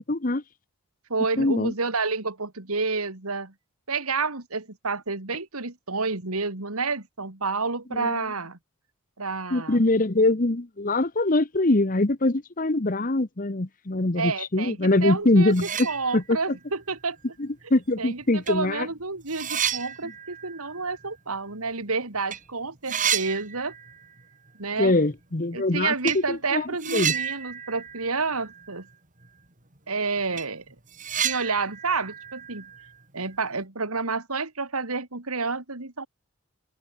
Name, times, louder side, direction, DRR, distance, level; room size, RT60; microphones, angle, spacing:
voice 1, 0.1-0.4 1.4-1.7 7.9-8.2 9.5-15.7 16.1-16.4 17.4-18.9 20.0-20.1 24.8-27.1, left 2 dB, 40° left, 1.1 m, -23 dB
voice 2, 1.1-3.5 3.9-8.6 9.2-9.9 14.2-15.5 15.8-17.2 18.0-23.7 24.6-24.9 25.5-28.9 29.9-30.6 31.2-32.7 33.1-36.1, right 4 dB, 85° right, 2.9 m, -29 dB
sound 1, 15.1-15.2 15.5-16.5 16.9-17.0 18.0-18.1 18.5-21.9 22.2-22.4 22.6-24.2 24.5-24.6 26.0-26.3 26.8-28.9 29.2-29.3 29.8-29.9 30.2-33.4, right 8 dB, 35° right, 2.9 m, -32 dB
head